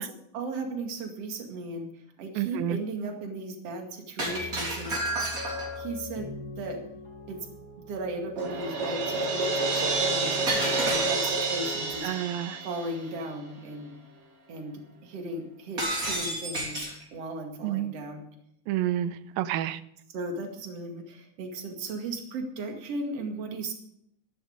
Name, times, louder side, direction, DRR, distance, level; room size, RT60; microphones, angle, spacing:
voice 1, 0.0-5.0 5.8-6.8 7.3-7.4 7.9-12.1 12.6-13.9 14.5-18.2 20.1-23.7, right 2 dB, 45° right, 2.8 m, -36 dB
voice 2, 2.4-2.8 12.0-12.6 17.6-17.9 18.7-19.8, right 12 dB, 80° right, 2.4 m, -29 dB
Shatter, 4.2-5.8 10.5-11.5 15.8-17.0, right 1 dB, 25° right, 3.5 m, -31 dB
sound 1, 4.3-11.9, left 1 dB, 10° left, 3.7 m, -43 dB
Crash cymbal, 8.4-13.3, right 3 dB, 65° right, 3.8 m, -29 dB
14.5 x 11.5 x 5.1 m
omnidirectional pair, 4.3 m